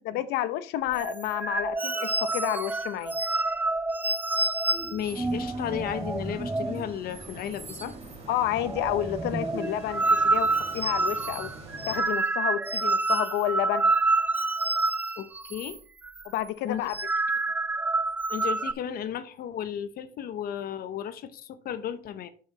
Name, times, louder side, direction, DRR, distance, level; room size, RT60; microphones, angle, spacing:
voice 1, 0.0-3.1 8.3-11.5 11.9-13.9 16.3-17.0, left 13 dB, 90° left, 13 dB, 0.8 m, -30 dB
sound 1, 0.9-6.9 7.2-7.3 7.6-8.1 8.4-15.8 16.0-16.3 16.7-18.7, right 3 dB, 10° right, 0.3 m, -28 dB
voice 2, 4.9-8.0 15.2-15.8 16.6-16.8 18.3-22.3, left 9 dB, 65° left, 12 dB, 0.9 m, -34 dB
sound 2, 5.0-12.0, right 2 dB, 35° right, 3.9 m, -45 dB
7.4 x 6.4 x 4.1 m, 0.41 s
cardioid pair, 110°, 17 cm